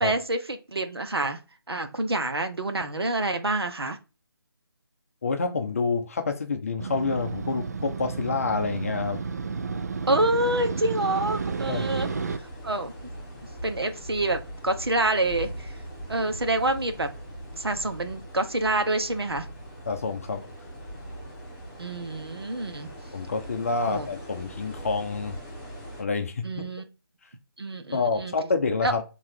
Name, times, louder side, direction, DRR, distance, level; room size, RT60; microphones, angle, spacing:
voice 1, 0.0-1.4 1.7-4.0 10.1-12.1 12.4-12.9 13.6-15.7 16.1-17.1 17.6-19.5 21.8-22.9 23.9-24.1 26.4-26.9 27.6-28.3 28.8-28.9, right 2 dB, 80° right, 7 dB, 0.8 m, -27 dB
voice 2, 5.2-9.2 11.7-12.0 19.9-20.5 23.1-25.4 26.0-26.7 27.9-29.0, left 4 dB, 35° left, 6 dB, 0.6 m, -28 dB
Motorcycle, 6.8-12.4, right 5 dB, 45° right, 0.4 m, -32 dB
sound 1, 11.3-26.0, equal, 20° left, 2.4 m, -41 dB
3.8 x 3.1 x 4.3 m, 0.30 s
figure-of-eight pair, 155°, 13 cm